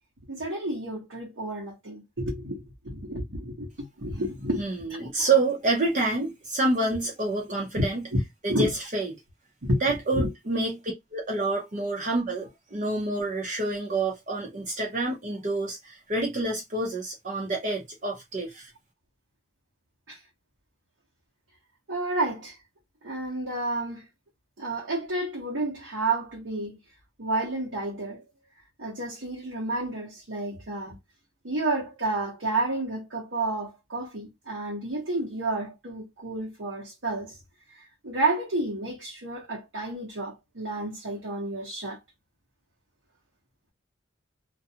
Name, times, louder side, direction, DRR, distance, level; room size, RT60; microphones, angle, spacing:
voice 1, 0.3-5.1 7.8-7.9 8.5-8.7 9.6-10.3 20.1-20.2 21.9-22.6 23.0-24.0 24.6-26.8 27.2-28.2 28.8-31.0 31.4-37.4 37.7-42.0, right 2 dB, 85° right, 0.9 m, -31 dB
voice 2, 4.6-8.0 8.4-9.1 9.8-10.8 11.1-18.7, right 2 dB, 40° right, 0.7 m, -28 dB
2.4 x 2.2 x 2.7 m
head